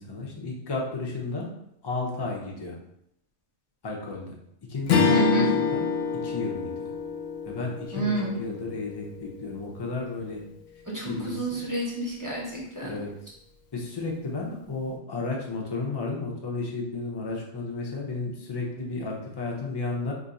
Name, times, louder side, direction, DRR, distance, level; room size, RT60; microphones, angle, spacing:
voice 1, 0.0-1.5 1.8-2.7 3.8-4.4 4.7-5.9 6.1-6.9 7.5-8.1 8.4-10.4 11.0-11.6 12.8-13.1 13.7-20.1, left 3 dB, 35° left, -2 dB, 0.4 m, -33 dB
Strum, 4.9-9.5, left 5 dB, 65° left, 0.7 m, -26 dB
voice 2, 5.1-5.5 7.9-8.4 10.9-12.9, right 2 dB, 20° right, -5 dB, 0.7 m, -29 dB
3.0 x 2.5 x 4.0 m, 0.77 s
omnidirectional pair, 1.4 m